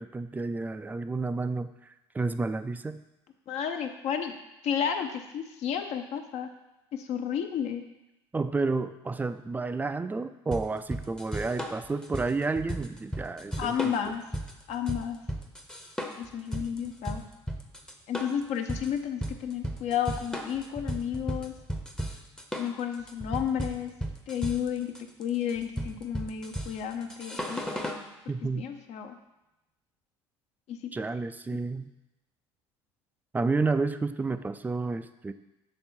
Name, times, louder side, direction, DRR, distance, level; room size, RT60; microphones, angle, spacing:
voice 1, 0.0-3.0 8.3-14.1 28.3-28.7 30.9-31.9 33.3-35.3, right 3 dB, 10° right, 11 dB, 0.3 m, -31 dB
voice 2, 3.5-4.3 4.6-6.5 6.9-7.8 13.6-14.2 14.7-15.2 16.2-17.2 18.1-21.5 22.6-23.9 24.3-24.9 25.2-27.6 28.6-29.2 30.7-30.8, left 8 dB, 50° left, 6 dB, 0.6 m, -32 dB
sound 1, 10.5-28.1, equal, 5° left, 0.7 m, -35 dB
7.1 x 3.4 x 4.3 m, 0.95 s
figure-of-eight pair, 65°, 14 cm